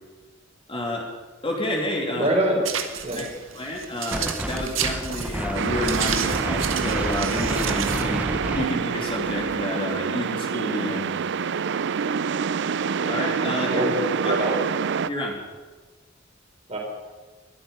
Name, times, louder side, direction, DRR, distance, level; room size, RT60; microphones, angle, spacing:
voice 1, 0.7-1.1 1.4-2.3 3.1-3.3 3.5-11.1 13.0-13.9 14.2-14.5 15.1-15.4, left 1 dB, 25° left, -1 dB, 2.7 m, -29 dB
voice 2, 2.1-2.6 3.0-3.2 13.7-13.9 14.2-14.6 16.7-16.8, right 1 dB, 35° right, 0 dB, 4.0 m, -24 dB
sound 1, 2.6-8.2, right 8 dB, 85° right, 1.6 m, -32 dB
Wind, 4.1-9.6, right 1 dB, 5° right, 0.7 m, -31 dB
sound 2, 5.5-15.1, right 6 dB, 60° right, 0.5 m, -27 dB
21.0 x 12.5 x 5.5 m, 1.3 s
head